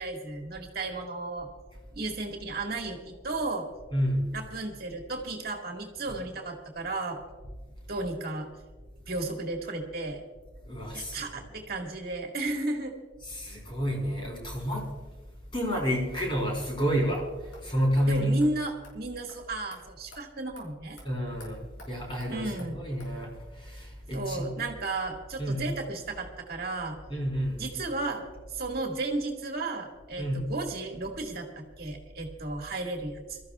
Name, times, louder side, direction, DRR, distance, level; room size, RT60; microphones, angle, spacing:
voice 1, 0.0-1.5 1.9-3.7 4.3-7.2 7.9-8.5 9.1-10.2 10.9-12.9 18.1-21.0 22.3-22.8 24.1-27.0 27.6-28.2 28.5-33.4, right 2 dB, 50° right, 1 dB, 2.0 m, -34 dB
voice 2, 3.9-4.3 10.7-11.5 13.3-14.9 15.5-18.3 21.0-24.5 25.4-25.7 27.1-27.6 30.2-30.5, equal, 25° left, -1 dB, 4.2 m, -30 dB
sound 1, 17.5-17.6 18.0-18.1 18.4-18.5 18.8-18.9 19.3-19.4 19.7-19.8 20.1-20.2 20.6-20.7 21.0-21.1 21.4-21.5 21.8-21.9 22.2-22.3 22.6-22.7 23.0-23.1, left 2 dB, 80° left, 4.9 m, -50 dB
27.0 x 14.0 x 2.4 m, 1.3 s
head